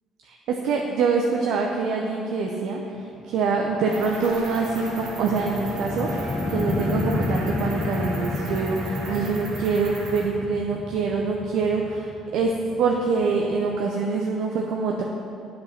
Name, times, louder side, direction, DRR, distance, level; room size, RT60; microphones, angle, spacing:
voice 1, 0.2-2.8 3.3-12.5 12.8-15.0, right 4 dB, 70° right, 0 dB, 0.7 m, -25 dB
sound 1, 3.2-13.9, left 3 dB, 30° left, 0.5 m, -32 dB
Brass instrument, 3.6-9.4, right 1 dB, 85° left, 1.3 m, -36 dB
Cricket, 3.9-10.2, right 2 dB, 90° right, 1.3 m, -39 dB
8.3 x 5.2 x 5.8 m, 2.7 s
hypercardioid pair, 65°, 0 cm